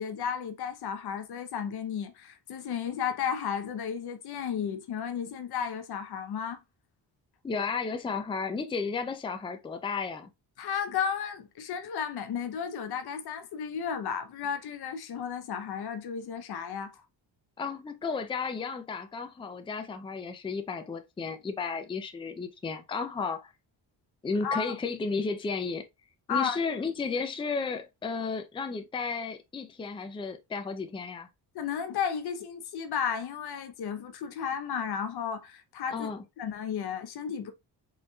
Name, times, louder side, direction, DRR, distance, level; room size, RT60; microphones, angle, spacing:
voice 1, 0.0-6.6 10.6-17.0 24.4-24.8 26.3-26.6 31.5-36.1 36.4-37.5, left 7 dB, 65° left, 0.8 m, -33 dB
voice 2, 7.4-10.3 17.6-23.5 24.2-25.8 26.3-31.3 35.9-36.2, left 4 dB, 15° left, 0.4 m, -33 dB
4.3 x 3.2 x 2.3 m
cardioid pair, 125°, 41 cm